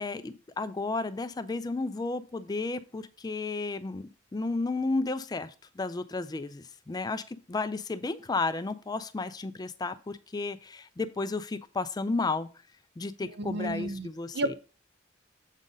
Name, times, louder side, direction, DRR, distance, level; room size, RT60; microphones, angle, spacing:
voice 1, 0.0-12.5 13.0-14.5, left 3 dB, 20° left, 12 dB, 0.4 m, -33 dB
voice 2, 13.2-14.1 14.3-14.6, right 1 dB, 55° right, 12 dB, 0.6 m, -32 dB
7.4 x 3.8 x 5.2 m, 0.35 s
head